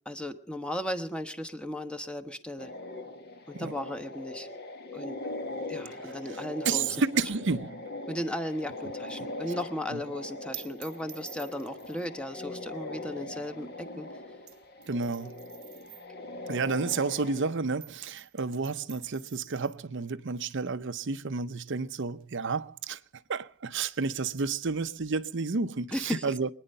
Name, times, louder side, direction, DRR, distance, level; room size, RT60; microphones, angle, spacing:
voice 1, 0.0-2.7 3.5-4.5 4.9-5.2 5.7-6.9 8.1-14.1 25.9-26.4, left 1 dB, 5° left, 1.1 m, -36 dB
sound 1, 2.6-17.5, left 2 dB, 50° left, 1.5 m, -41 dB
voice 2, 6.0-7.8 9.9-10.0 14.9-15.4 16.5-23.0 23.3-26.5, right 4 dB, 60° right, 0.7 m, -31 dB
sound 2, 8.5-17.4 17.7-24.9, right 15 dB, 85° right, 0.9 m, -52 dB
24.5 x 10.0 x 5.5 m
head